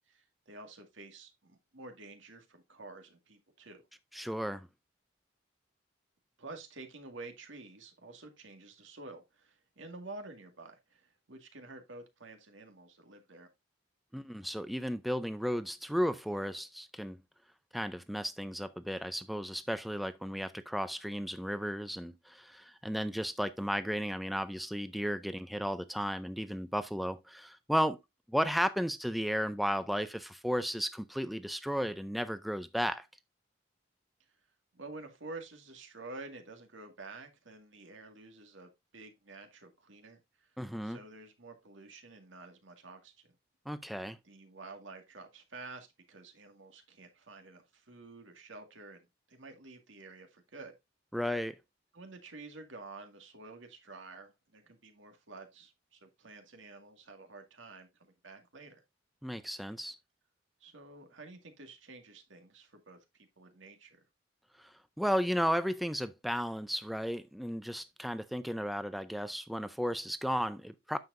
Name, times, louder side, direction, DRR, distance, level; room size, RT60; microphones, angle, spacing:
voice 1, 0.1-3.8 6.4-13.5 34.7-40.5 40.8-43.3 44.2-50.7 51.9-58.8 60.6-64.0, right 3 dB, 85° right, 2.0 m, -50 dB
voice 2, 4.1-4.7 14.1-17.2 17.7-28.0 28.3-33.1 40.6-41.0 43.7-44.2 51.1-51.6 59.2-60.0 64.6-71.0, equal, ahead, 0.4 m, -34 dB
9.4 x 7.0 x 2.6 m
head